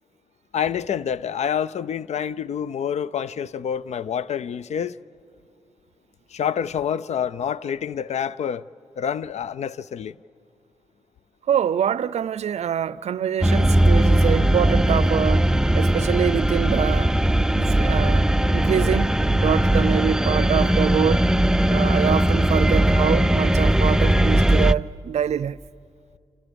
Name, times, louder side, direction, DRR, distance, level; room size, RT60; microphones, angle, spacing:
voice 1, 0.5-5.0 6.3-8.6 9.0-10.2, left 8 dB, 65° left, 0.5 m, -27 dB
voice 2, 11.5-17.1 17.6-18.3 18.5-21.3 21.7-25.6, right 8 dB, 60° right, 0.5 m, -25 dB
sound 1, 13.4-24.7, right 1 dB, 5° right, 0.5 m, -19 dB
29.5 x 26.5 x 5.3 m
supercardioid pair, 50°, 12 cm